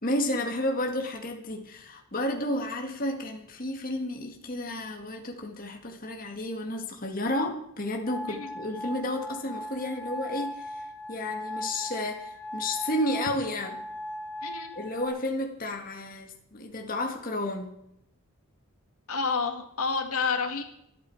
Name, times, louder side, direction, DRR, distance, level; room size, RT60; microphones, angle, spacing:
voice 1, 0.0-10.8 11.1-13.8 14.8-17.7, left 1 dB, 40° left, 2 dB, 1.9 m, -32 dB
sound 1, 8.0-15.1, left 1 dB, 10° left, 4.8 m, -38 dB
voice 2, 19.1-20.6, left 5 dB, 85° left, 5 dB, 2.2 m, -29 dB
25.5 x 8.8 x 4.7 m, 0.75 s
head